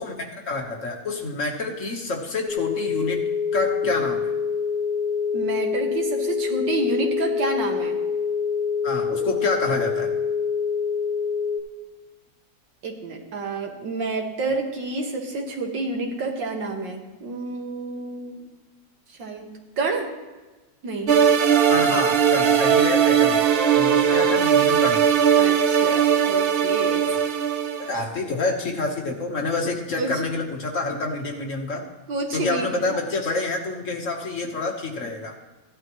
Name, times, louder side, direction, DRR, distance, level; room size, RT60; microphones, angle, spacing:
voice 1, 0.0-3.2 3.5-4.3 8.8-10.1 21.7-23.4 23.7-25.0 27.8-31.9 32.3-35.4, left 3 dB, 45° left, 2 dB, 1.5 m, -28 dB
sound 1, 2.5-11.6, left 6 dB, 30° left, 3.6 m, -26 dB
voice 2, 5.3-8.0 12.8-18.5 19.2-20.1 20.8-21.2 21.9-22.0 23.3-23.4 25.4-27.1 30.0-30.1 32.1-33.0, right 3 dB, 90° right, 2 dB, 2.3 m, -29 dB
sound 2, 21.1-28.0, right 8 dB, 65° right, 0.5 m, -19 dB
16.0 x 11.0 x 3.1 m, 1.2 s
omnidirectional pair, 1.9 m